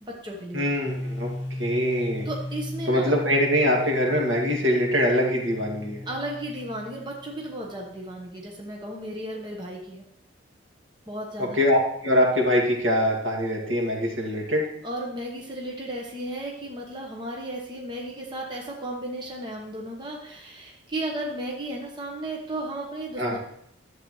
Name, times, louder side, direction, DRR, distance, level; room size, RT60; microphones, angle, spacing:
voice 1, 0.0-0.6 2.2-3.2 6.0-10.0 11.1-11.6 14.8-23.4, right 1 dB, 25° right, -1 dB, 1.0 m, -34 dB
voice 2, 0.5-1.3 1.6-2.3 2.9-6.0 11.4-14.7 23.2-23.4, equal, 75° right, -1 dB, 2.1 m, -23 dB
sound 1, 0.9-7.7, left 1 dB, 60° left, 1.4 m, -36 dB
11.0 x 7.8 x 3.1 m, 0.73 s
head